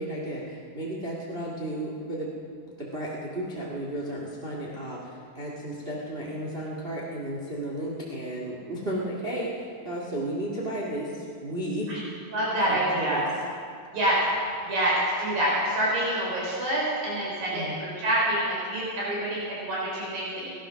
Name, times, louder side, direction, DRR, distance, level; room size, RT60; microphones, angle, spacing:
voice 1, 0.0-2.3 2.7-5.1 5.3-11.9 12.7-13.3 17.5-17.8, right 1 dB, 30° right, -4 dB, 1.1 m, -33 dB
voice 2, 12.3-13.3 13.9-14.2 14.7-20.6, right 1 dB, 65° right, -5 dB, 5.8 m, -27 dB
19.0 x 11.5 x 6.3 m, 2.2 s
omnidirectional pair, 4.3 m